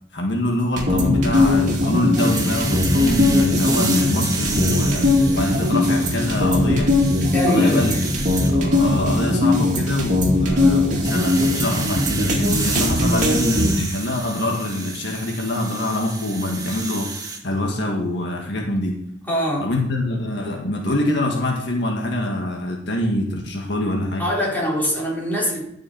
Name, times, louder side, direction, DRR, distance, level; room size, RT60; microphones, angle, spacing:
voice 1, 0.1-7.1 7.5-7.9 8.5-17.1 17.4-19.0 19.6-24.2, left 1 dB, 65° left, 0 dB, 1.8 m, -25 dB
sound 1, 0.8-13.7, left 2 dB, 45° right, 2.5 m, -19 dB
sound 2, 2.2-6.5 6.9-8.5 11.0-17.4, right 4 dB, 20° right, 1.4 m, -31 dB
voice 2, 7.3-8.0 19.3-19.7 24.2-25.6, equal, 10° left, -5 dB, 4.2 m, -23 dB
12.0 x 6.3 x 5.7 m, 0.73 s
head